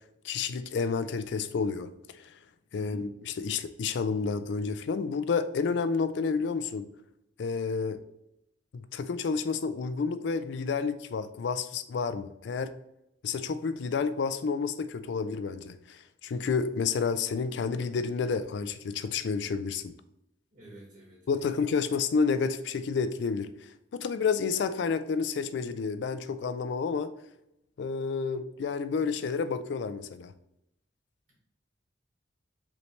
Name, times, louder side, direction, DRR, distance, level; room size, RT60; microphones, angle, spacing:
voice 1, 0.2-1.9 2.2-2.3 2.7-6.9 7.4-8.0 8.7-12.7 13.2-19.9 21.3-27.1 27.8-30.3, left 5 dB, 70° left, 12 dB, 0.3 m, -30 dB
voice 2, 2.7-3.0 20.5-21.6, right 1 dB, 45° right, -5 dB, 1.5 m, -50 dB
5.5 x 3.2 x 3.1 m, 0.84 s
head